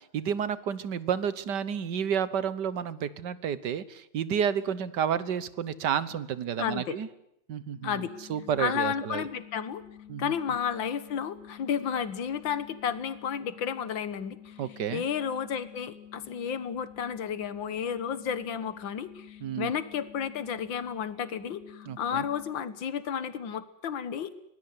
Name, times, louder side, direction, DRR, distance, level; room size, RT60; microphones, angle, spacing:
voice 1, 0.1-7.1 7.5-8.0 8.3-9.2 10.1-10.3 14.6-15.0 19.4-19.7 21.9-22.2, right 8 dB, 65° right, 16 dB, 1.7 m, -30 dB
voice 2, 6.6-7.0 7.8-8.1 8.6-9.8 10.2-14.6 14.9-24.3, left 8 dB, 75° left, 14 dB, 2.1 m, -32 dB
sound 1, 7.8-22.5, left 10 dB, 5° right, 5.6 m, -50 dB
24.0 x 19.0 x 9.7 m, 0.80 s
omnidirectional pair, 2.1 m